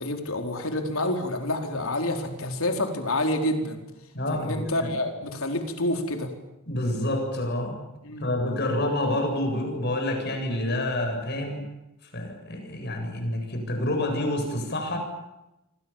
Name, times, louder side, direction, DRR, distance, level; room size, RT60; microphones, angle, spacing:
voice 1, 0.0-3.8 4.3-6.3 8.0-8.3, left 1 dB, 70° left, 4 dB, 4.4 m, -28 dB
voice 2, 4.1-4.9 6.7-7.8 8.2-11.7 12.1-15.0, left 1 dB, 50° left, 5 dB, 8.0 m, -28 dB
29.0 x 24.5 x 7.4 m, 0.93 s
head